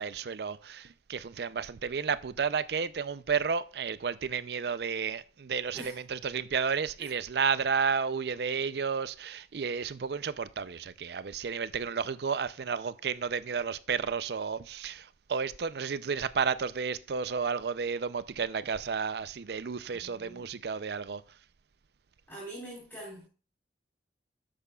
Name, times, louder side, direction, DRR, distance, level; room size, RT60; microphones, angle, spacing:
voice 1, 0.0-21.2, right 6 dB, 65° right, 0.5 m, -32 dB
voice 2, 19.9-20.5 22.3-23.3, right 1 dB, 10° left, 4.1 m, -44 dB
12.5 x 8.7 x 2.3 m
head